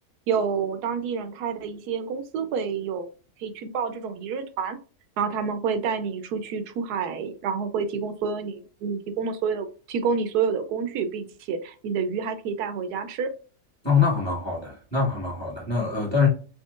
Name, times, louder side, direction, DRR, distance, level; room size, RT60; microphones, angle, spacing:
voice 1, 0.3-3.1 3.4-4.8 5.2-13.3, right 6 dB, 80° right, 1.1 m, -28 dB
voice 2, 13.8-16.3, left 5 dB, 20° left, 1.3 m, -24 dB
4.4 x 2.8 x 2.3 m
omnidirectional pair, 1.6 m